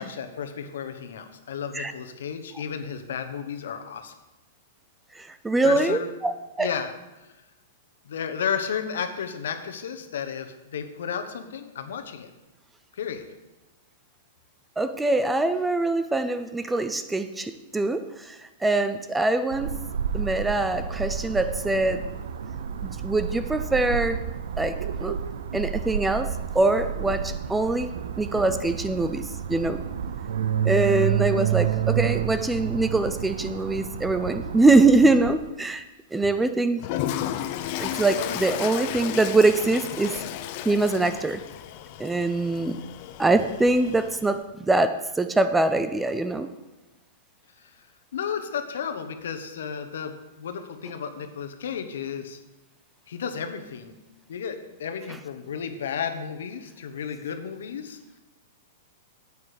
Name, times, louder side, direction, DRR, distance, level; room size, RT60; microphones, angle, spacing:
voice 1, 0.0-4.1 5.6-6.1 6.6-6.9 7.2-7.3 8.0-12.3 12.9-13.2 38.1-38.4 47.6-47.7 48.1-52.4 53.1-53.9 54.3-58.0, left 7 dB, 80° left, 8 dB, 1.1 m, -33 dB
voice 2, 5.2-6.7 14.8-19.8 20.1-22.1 22.8-24.2 24.6-25.2 25.5-29.8 30.6-35.8 36.1-36.9 37.8-40.2 40.7-41.4 42.0-42.8 43.2-46.5, right 2 dB, 5° right, 11 dB, 0.4 m, -23 dB
sound 1, 19.5-35.3, right 9 dB, 80° right, 0.7 m, -30 dB
Toilet flush, 36.8-44.3, left 12 dB, 40° left, 0.6 m, -33 dB
9.5 x 8.3 x 5.0 m, 1.1 s
hypercardioid pair, 155°, 0 cm